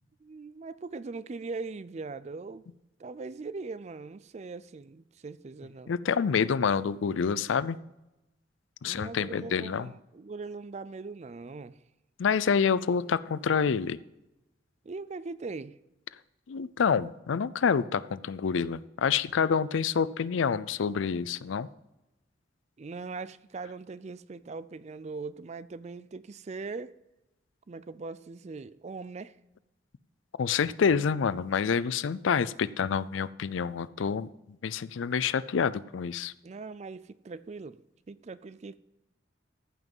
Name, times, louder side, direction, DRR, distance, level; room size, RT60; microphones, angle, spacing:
voice 1, 0.2-2.6 3.0-5.9 8.8-11.8 14.8-15.8 22.8-26.9 27.7-29.4 36.4-37.8 38.1-38.8, right 4 dB, 35° right, 0.4 m, -40 dB
voice 2, 5.9-7.8 8.8-9.9 12.2-14.0 16.5-21.7 30.4-34.3 34.6-36.3, left 6 dB, 80° left, 0.4 m, -27 dB
14.0 x 6.0 x 5.4 m
head